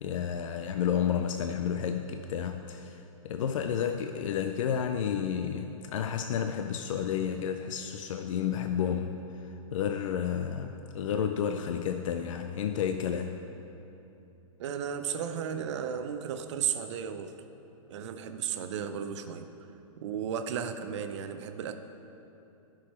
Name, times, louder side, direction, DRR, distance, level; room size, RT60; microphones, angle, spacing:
voice 1, 0.0-13.4, left 8 dB, 70° left, 6 dB, 0.5 m, -31 dB
voice 2, 14.6-17.3 17.9-19.5 20.0-21.8, right 8 dB, 55° right, 8 dB, 0.6 m, -34 dB
11.5 x 6.3 x 4.4 m, 3.0 s
hypercardioid pair, 135°, 17 cm